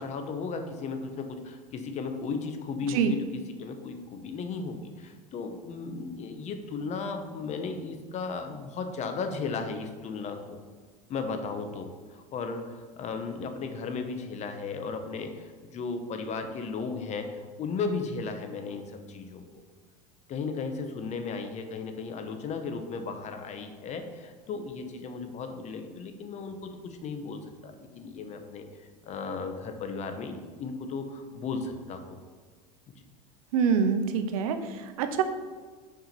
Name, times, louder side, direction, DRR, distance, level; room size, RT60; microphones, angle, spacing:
voice 1, 0.0-3.3 3.6-10.6 11.1-19.6 20.3-28.7 29.1-32.2, left 4 dB, 40° left, 6 dB, 1.0 m, -35 dB
voice 2, 33.5-35.2, right 6 dB, 80° right, 8 dB, 0.8 m, -25 dB
6.0 x 4.8 x 5.7 m, 1.5 s
supercardioid pair, 110°, 18 cm